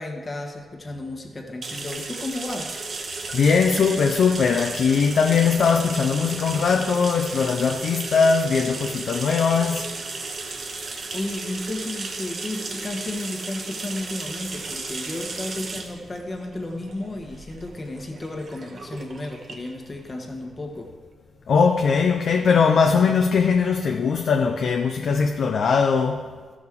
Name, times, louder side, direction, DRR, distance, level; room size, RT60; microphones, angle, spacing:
voice 1, 0.0-2.8 11.1-20.9, left 2 dB, 30° left, 1.3 m, -33 dB
sound 1, 1.6-21.0, right 3 dB, 50° right, 1.0 m, -35 dB
voice 2, 3.3-9.9 21.5-26.2, left 5 dB, 65° left, 0.6 m, -20 dB
14.5 x 6.2 x 3.7 m
cardioid pair, 115°, 0 cm